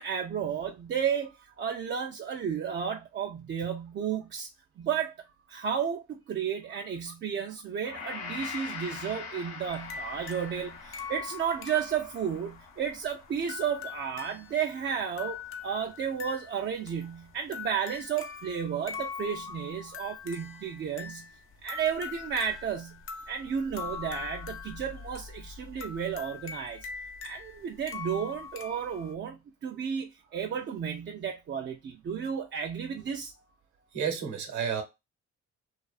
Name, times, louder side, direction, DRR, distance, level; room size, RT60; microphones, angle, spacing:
voice 1, 0.0-4.5 4.8-5.1 5.5-21.3 21.6-23.0 23.3-26.9 27.2-33.3, right 7 dB, 40° right, 0.4 m, -33 dB
Gong, 7.8-16.3 16.6-16.8, left 6 dB, 75° left, 0.9 m, -44 dB
sound 1, 9.7-29.1, left 6 dB, 45° left, 0.5 m, -42 dB
voice 2, 33.9-34.8, right 7 dB, 70° right, 0.9 m, -31 dB
2.4 x 2.4 x 2.3 m
cardioid pair, 90°, 30 cm